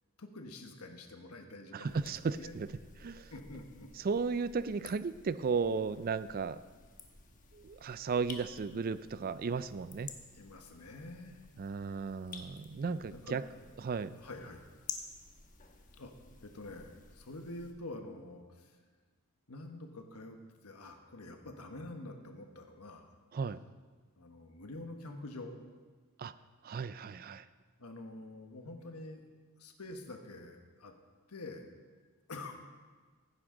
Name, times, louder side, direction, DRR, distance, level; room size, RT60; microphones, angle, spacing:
voice 1, 0.2-2.6 3.3-3.9 10.3-11.4 12.7-13.4 14.2-14.6 15.9-16.1 16.4-18.8 19.5-20.4 20.6-23.1 24.2-25.6 27.8-29.2 29.6-30.9 31.3-31.7 32.3-32.6, left 2 dB, 85° left, 4 dB, 1.2 m, -47 dB
voice 2, 1.7-2.7 3.0-3.3 4.0-6.6 7.5-10.1 11.6-13.4 13.8-14.2 23.3-23.6 26.2-26.3 26.6-27.5, right 5 dB, 40° right, 15 dB, 0.4 m, -35 dB
sound 1, 1.8-17.7, left 5 dB, 35° left, 1.1 m, -52 dB
16.0 x 9.8 x 3.8 m, 1.4 s
head